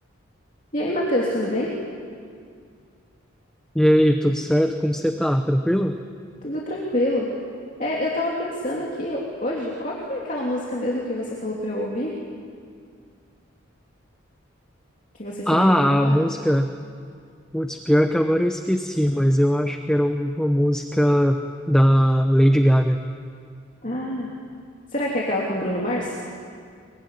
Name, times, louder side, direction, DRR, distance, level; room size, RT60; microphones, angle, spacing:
voice 1, 0.7-1.7 6.4-7.3 7.8-12.1 15.1-16.3 23.8-24.3 24.9-26.2, left 1 dB, 40° left, -4 dB, 3.1 m, -26 dB
voice 2, 3.7-6.0 15.5-16.7 17.5-21.4 21.7-23.0, equal, 5° left, 6 dB, 0.8 m, -19 dB
23.5 x 22.5 x 9.9 m, 2.2 s
head